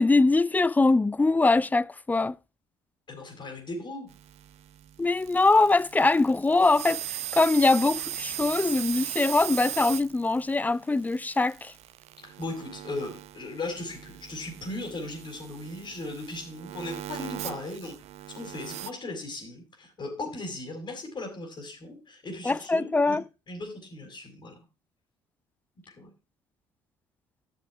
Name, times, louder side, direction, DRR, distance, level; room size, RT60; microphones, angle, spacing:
voice 1, 0.0-2.4 5.0-11.7 22.5-23.2, left 3 dB, 15° left, 0.5 m, -23 dB
voice 2, 3.1-4.1 12.2-18.0 18.3-23.2 23.5-24.6 25.9-26.1, left 2 dB, 40° left, 4.7 m, -37 dB
sound 1, 4.1-18.9, right 13 dB, 60° right, 0.7 m, -39 dB
13.0 x 6.7 x 4.6 m
hypercardioid pair, 55°, 12 cm